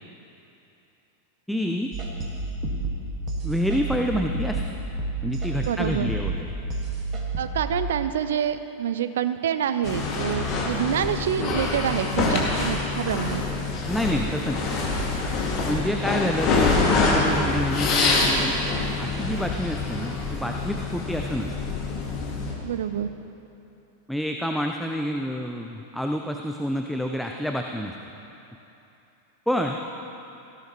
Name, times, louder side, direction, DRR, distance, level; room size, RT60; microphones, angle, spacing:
voice 1, 1.5-1.9 3.4-4.6 5.2-6.5 13.9-15.0 15.7-21.5 24.1-27.9 29.5-29.8, equal, ahead, 2 dB, 0.6 m, -28 dB
sound 1, 1.9-7.8, right 2 dB, 30° right, 1.9 m, -30 dB
voice 2, 5.7-6.1 7.4-13.4 22.6-23.1, right 9 dB, 60° right, 11 dB, 0.6 m, -27 dB
sound 2, 9.8-22.5, left 3 dB, 35° left, 2.3 m, -25 dB
18.5 x 15.5 x 3.2 m, 2.9 s
figure-of-eight pair, 90°, 0 cm